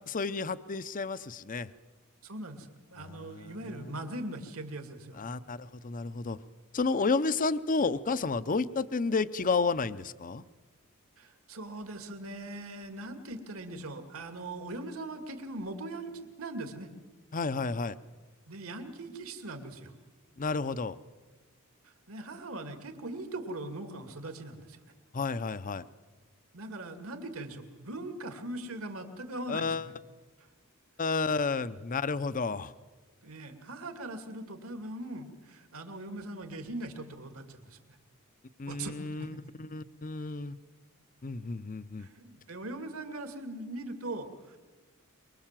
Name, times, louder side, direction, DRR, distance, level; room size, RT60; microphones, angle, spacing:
voice 1, 0.1-1.7 3.0-3.5 5.2-6.4 6.7-10.4 17.3-17.9 20.4-21.0 25.1-25.8 29.5-29.9 31.0-32.7 38.6-40.6 41.2-42.1, left 4 dB, 40° left, 15 dB, 0.7 m, -31 dB
voice 2, 2.2-5.3 11.2-16.9 18.5-19.9 21.8-24.8 26.5-29.9 30.4-30.5 33.2-38.0 38.7-39.4 42.0-44.6, right 2 dB, 70° right, 6 dB, 2.4 m, -41 dB
23.5 x 23.0 x 7.5 m, 1.3 s
head